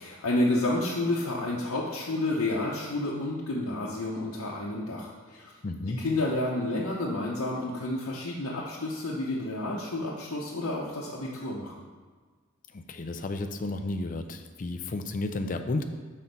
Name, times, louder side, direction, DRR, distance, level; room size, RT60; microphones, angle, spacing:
voice 1, 0.0-5.5 6.0-11.7, left 2 dB, 90° left, -5 dB, 0.8 m, -30 dB
voice 2, 5.6-6.0 12.7-15.8, left 2 dB, 40° left, 7 dB, 0.4 m, -32 dB
6.0 x 4.1 x 5.3 m, 1.5 s
head